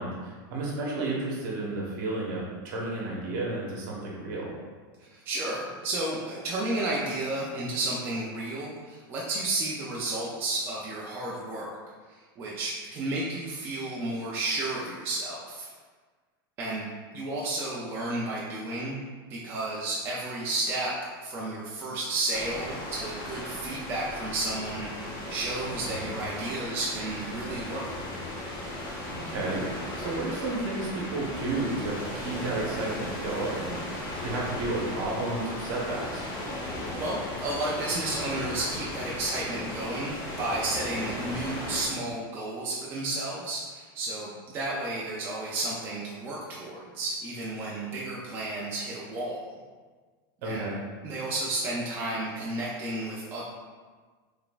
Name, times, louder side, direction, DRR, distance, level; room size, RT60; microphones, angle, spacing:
voice 1, 0.0-4.5 25.9-26.2 29.1-29.7 29.9-36.3 50.4-50.8, right 2 dB, 55° right, -3 dB, 1.0 m, -32 dB
voice 2, 5.0-11.7 12.1-15.7 16.6-16.9 17.1-19.0 19.3-27.9 36.9-49.5 50.4-50.7 51.0-53.4, right 2 dB, 20° right, -5 dB, 0.4 m, -32 dB
sound 1, 22.3-41.9, left 1 dB, 65° left, 1.3 m, -36 dB
3.9 x 3.4 x 2.4 m, 1.5 s
supercardioid pair, 175°, 12 cm